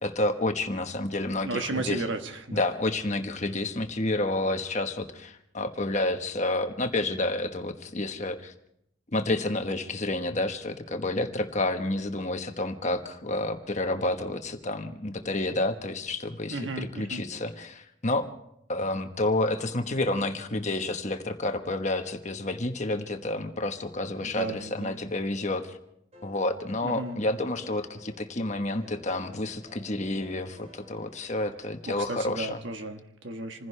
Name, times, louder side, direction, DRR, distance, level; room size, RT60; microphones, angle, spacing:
voice 1, 0.0-2.0 2.5-8.5 9.1-18.3 18.7-25.8 26.2-32.6, left 2 dB, 35° left, 6 dB, 1.2 m, -29 dB
voice 2, 1.4-2.6 16.5-17.2 24.2-25.0 26.8-27.2 31.9-33.7, right 2 dB, 65° right, 6 dB, 1.3 m, -34 dB
sound 1, 26.1-32.0, left 2 dB, 35° right, 4.4 m, -53 dB
27.5 x 15.5 x 3.4 m, 0.75 s
head